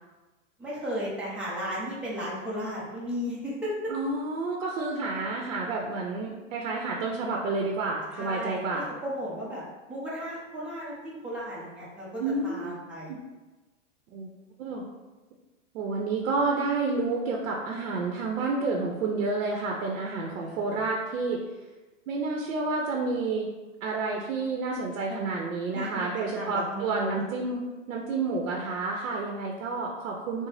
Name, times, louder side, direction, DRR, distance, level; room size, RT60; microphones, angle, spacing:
voice 1, 0.6-3.9 8.1-9.6 9.9-13.1 20.3-20.9 25.1-25.4 25.7-26.1 26.3-27.2, equal, 5° right, -8 dB, 0.4 m, -35 dB
voice 2, 3.9-8.9 12.2-12.8 13.1-13.2 14.1-14.3 14.6-14.8 15.7-21.4 22.1-23.5 23.8-27.6 27.9-30.5, right 3 dB, 80° right, 0 dB, 0.6 m, -30 dB
3.8 x 2.0 x 3.2 m, 1.2 s
hypercardioid pair, 140°, 39 cm